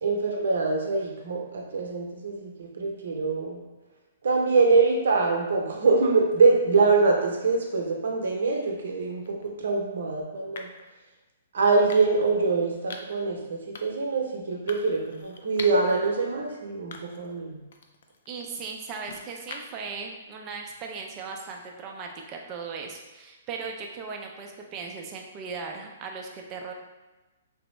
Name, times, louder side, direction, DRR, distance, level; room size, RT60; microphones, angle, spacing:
voice 1, 0.0-3.6 4.2-10.7 11.5-17.6, right 4 dB, 75° right, 0 dB, 0.7 m, -24 dB
sound 1, 9.2-9.5 10.5-10.9 11.9-12.3 12.9-13.2 13.7-14.1 14.7-15.9 16.4-16.5 16.9-17.4 17.7-19.9, left 4 dB, 70° left, 0.3 m, -43 dB
voice 2, 18.3-26.7, right 5 dB, 30° right, 1 dB, 0.4 m, -38 dB
3.4 x 2.0 x 3.1 m, 1.2 s
hypercardioid pair, 145°, 0 cm